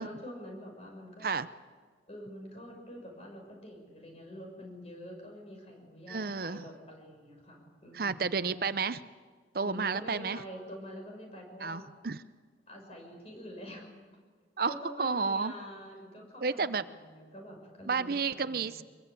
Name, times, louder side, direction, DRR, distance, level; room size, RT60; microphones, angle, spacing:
voice 1, 0.0-1.4 2.1-8.7 9.6-11.9 12.7-13.9 14.6-18.5, equal, 35° left, 2 dB, 6.2 m, -46 dB
voice 2, 6.1-6.6 7.9-9.0 9.5-10.4 11.6-12.2 14.6-15.5 16.4-16.8 17.9-18.8, right 5 dB, 55° right, 13 dB, 0.6 m, -31 dB
24.0 x 22.0 x 8.4 m, 1.5 s
head